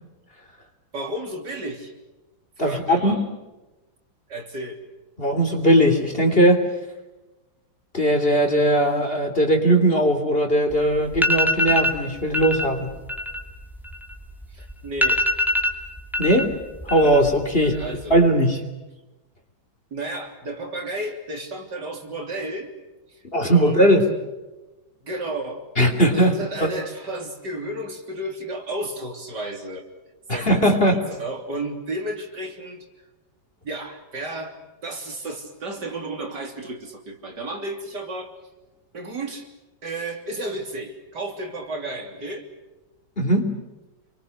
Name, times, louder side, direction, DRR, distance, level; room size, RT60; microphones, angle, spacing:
voice 1, 0.9-1.9 2.6-3.2 4.3-4.8 14.5-15.2 17.5-18.2 19.9-22.7 23.1-23.2 23.5-24.0 25.0-25.6 26.1-29.9 30.3-32.9 33.6-34.5 34.8-38.3 38.9-39.5 39.8-42.5, right 1 dB, 60° right, 3 dB, 3.8 m, -32 dB
voice 2, 2.6-3.2 5.2-6.6 7.9-12.9 16.2-16.5 16.8-17.7 18.1-18.6 23.3-24.1 25.8-26.3 26.6-26.7 30.3-31.0 43.2-43.6, right 1 dB, 30° left, 4 dB, 3.4 m, -19 dB
sound 1, 10.7-10.8 11.1-12.0 12.3-12.7 13.0-14.4 14.7-14.8 15.0-16.4 16.7-17.3 17.6-18.2, left 1 dB, ahead, 2.6 m, -23 dB
29.5 x 23.5 x 6.6 m, 1.1 s
omnidirectional pair, 2.1 m